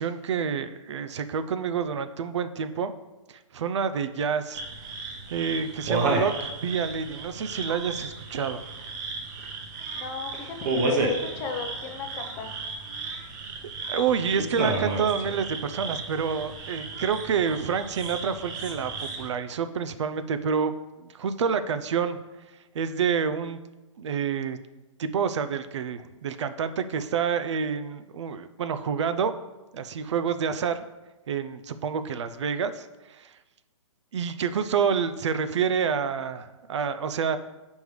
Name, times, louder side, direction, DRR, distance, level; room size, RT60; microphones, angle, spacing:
voice 1, 0.0-2.9 3.3-4.6 5.3-8.6 13.0-13.1 13.8-22.2 22.7-23.6 24.0-24.6 25.0-29.4 29.7-30.8 31.3-33.3 34.1-37.4, right 6 dB, 60° right, 11 dB, 0.5 m, -28 dB
sound 1, 4.5-19.3, right 2 dB, 35° right, 0.9 m, -32 dB
voice 2, 9.9-12.6, left 5 dB, 20° left, 4 dB, 0.6 m, -36 dB
7.7 x 5.3 x 3.2 m, 1.1 s
hypercardioid pair, 155°, 17 cm